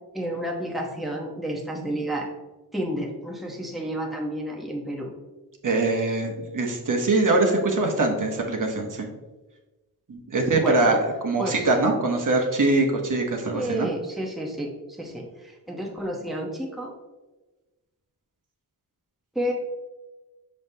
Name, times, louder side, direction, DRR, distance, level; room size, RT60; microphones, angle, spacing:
voice 1, 0.1-2.3 2.7-5.1 10.5-10.8 11.4-11.7 13.5-16.9 19.3-19.5, right 1 dB, ahead, -1 dB, 0.9 m, -30 dB
voice 2, 5.6-9.1 10.1-13.9, right 2 dB, 60° right, 2 dB, 1.0 m, -23 dB
6.4 x 5.4 x 2.7 m, 1.2 s
wide cardioid pair, 125°, 36 cm